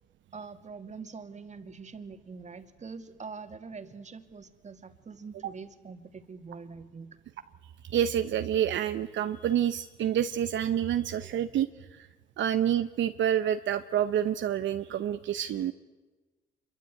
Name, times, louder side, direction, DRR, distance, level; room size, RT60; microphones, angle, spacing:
voice 1, 0.3-7.2 11.1-11.4, right 5 dB, 35° right, 8 dB, 2.3 m, -44 dB
voice 2, 7.9-12.1 12.4-15.7, right 10 dB, 70° right, 9 dB, 0.9 m, -28 dB
26.0 x 23.0 x 9.2 m, 1.2 s
cardioid pair, 90°, 20 cm